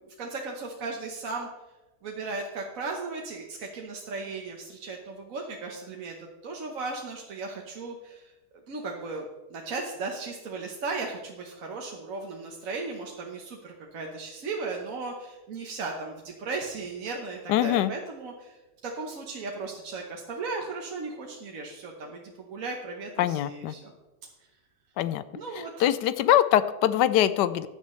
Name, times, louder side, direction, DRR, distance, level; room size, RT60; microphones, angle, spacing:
voice 1, 0.0-1.5 2.0-8.3 8.7-9.2 9.5-18.6 18.8-23.9 25.3-25.9, right 3 dB, 55° right, 0 dB, 1.4 m, -36 dB
voice 2, 17.5-17.9 23.2-23.7 25.0-25.2 25.8-27.7, left 12 dB, 80° left, 15 dB, 1.2 m, -23 dB
15.5 x 10.0 x 3.2 m, 1.1 s
omnidirectional pair, 1.8 m